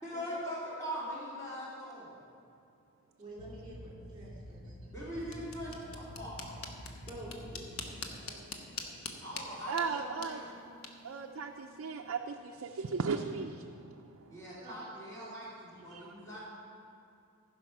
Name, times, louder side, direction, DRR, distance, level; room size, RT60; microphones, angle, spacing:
voice 1, 0.0-2.1 4.9-6.6 9.2-10.6 14.3-16.4, equal, 15° left, -9 dB, 2.7 m, -41 dB
voice 2, 3.2-4.9 7.1-8.9 9.2-9.3 14.6-14.7, right 1 dB, 20° right, -5 dB, 3.0 m, -49 dB
sound 1, 3.3-8.0, equal, 55° left, 2.6 m, -48 dB
sound 2, 5.2-12.1, left 4 dB, 75° left, 1.0 m, -46 dB
voice 3, 9.7-10.4 11.0-13.6 15.9-16.0, right 5 dB, 70° right, 3 dB, 0.5 m, -36 dB
14.5 x 5.3 x 6.0 m, 2.6 s
head